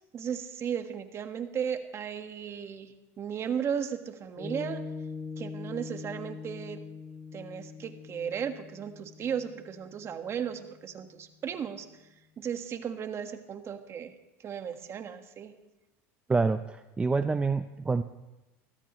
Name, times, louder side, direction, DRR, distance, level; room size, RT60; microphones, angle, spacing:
voice 1, 0.1-4.8 5.4-6.8 7.3-11.9 12.4-14.1 14.4-15.5, right 8 dB, 35° right, 7 dB, 1.6 m, -35 dB
Piano, 4.4-11.0, left 4 dB, 35° left, 3.9 m, -42 dB
voice 2, 16.3-18.0, right 4 dB, 15° right, 10 dB, 0.6 m, -27 dB
22.0 x 15.0 x 3.1 m, 1.0 s
supercardioid pair, 105°, 8 cm